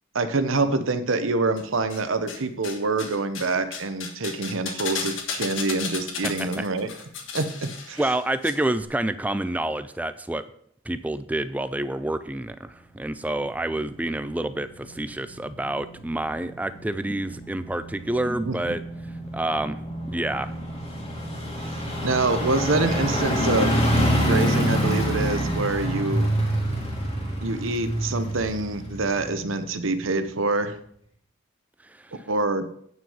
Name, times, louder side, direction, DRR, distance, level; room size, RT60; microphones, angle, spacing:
voice 1, 0.1-6.9 7.3-8.0 18.4-18.8 22.0-23.8 24.2-26.3 27.4-30.7 32.3-32.7, right 3 dB, 80° right, 10 dB, 0.9 m, -26 dB
sound 1, 1.6-2.4 2.6-8.5 8.8-8.9, left 5 dB, 70° left, 1.5 m, -34 dB
voice 2, 6.2-6.7 8.0-10.4 10.9-18.8 19.3-19.8 20.1-20.5, right 1 dB, 5° right, 12 dB, 0.3 m, -28 dB
sound 2, 13.4-29.9 30.3-30.4, equal, 30° left, 2.4 m, -27 dB
9.1 x 6.2 x 5.6 m, 0.66 s
head